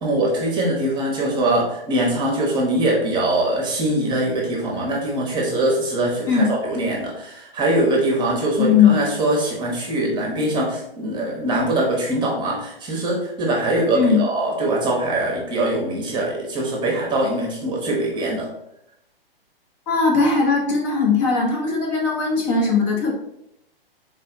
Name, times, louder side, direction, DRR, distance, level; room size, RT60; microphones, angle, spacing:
voice 1, 0.0-18.5, right 1 dB, 15° right, -1 dB, 0.9 m, -22 dB
voice 2, 8.6-9.0 13.9-14.2 19.9-23.1, left 5 dB, 30° left, 0 dB, 0.8 m, -18 dB
3.8 x 3.2 x 3.8 m, 0.81 s
figure-of-eight pair, 120°, 30 cm